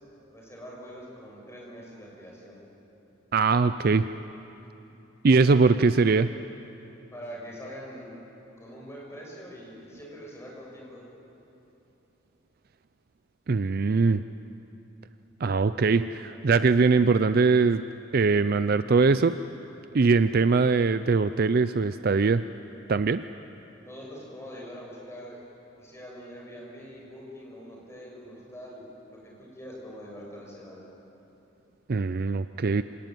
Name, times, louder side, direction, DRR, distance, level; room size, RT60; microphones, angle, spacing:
voice 1, 0.3-2.6 7.1-8.2 8.6-11.0 23.8-25.5 25.8-30.8, equal, 15° left, -3 dB, 6.3 m, -43 dB
voice 2, 3.3-4.1 5.2-6.3 13.5-14.2 15.4-17.8 18.1-19.4 19.9-22.4 22.9-23.2 31.9-32.8, right 4 dB, 50° right, 12 dB, 0.5 m, -21 dB
26.5 x 19.0 x 9.2 m, 3.0 s
head